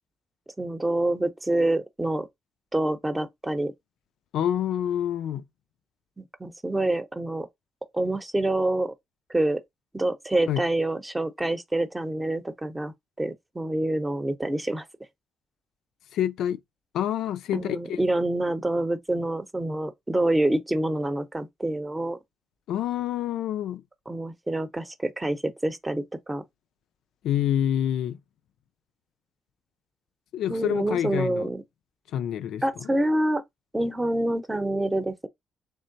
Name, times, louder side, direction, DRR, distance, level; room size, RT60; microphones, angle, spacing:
voice 1, 0.6-2.3 2.7-3.7 6.2-7.5 7.9-8.9 9.3-9.6 9.9-12.9 13.2-14.8 17.5-22.2 24.1-26.4 30.5-31.6 32.6-33.4 33.7-35.3, right 1 dB, 15° right, 0.7 m, -27 dB
voice 2, 4.3-5.4 10.5-10.6 16.1-16.6 16.9-18.0 22.7-23.8 27.2-28.2 30.3-31.5 32.1-32.9, left 10 dB, 80° left, 0.3 m, -27 dB
3.7 x 3.3 x 2.6 m
cardioid pair, 90°, 0 cm